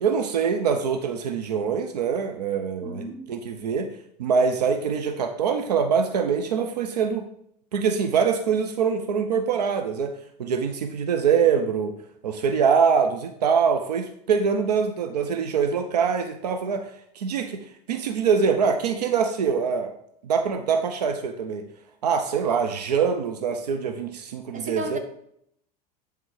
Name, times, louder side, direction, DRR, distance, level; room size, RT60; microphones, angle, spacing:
voice 1, 0.0-3.9 4.2-7.2 7.7-10.1 10.4-11.9 12.2-16.9 17.2-17.6 17.9-19.9 20.2-21.6 22.0-25.0, right 6 dB, 90° right, 7 dB, 0.7 m, -24 dB
voice 2, 2.8-3.3 24.5-25.0, right 2 dB, 40° right, 6 dB, 1.5 m, -33 dB
10.5 x 3.6 x 4.8 m, 0.71 s
hypercardioid pair, 95°, 20 cm